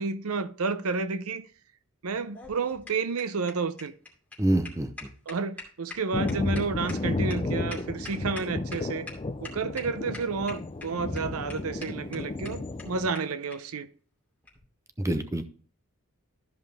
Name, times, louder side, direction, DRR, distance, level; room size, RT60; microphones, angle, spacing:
voice 1, 0.0-1.5 2.0-3.9 5.3-9.1 9.4-13.9, right 4 dB, 80° right, 0.6 m, -31 dB
sound 1, 2.1-8.8 9.1-9.2 9.4-9.8 10.1-10.8 11.2-11.3 11.5-11.6 11.8-11.9 12.1-12.2 12.4-12.5 12.8-12.9 13.1-13.2 13.5-13.6 14.4-14.6, left 3 dB, 5° left, 2.5 m, -43 dB
voice 2, 4.4-5.1 15.0-15.5, right 1 dB, 15° right, 0.7 m, -26 dB
Thunder, 6.1-13.1, left 2 dB, 25° left, 0.4 m, -32 dB
13.0 x 5.4 x 3.4 m
head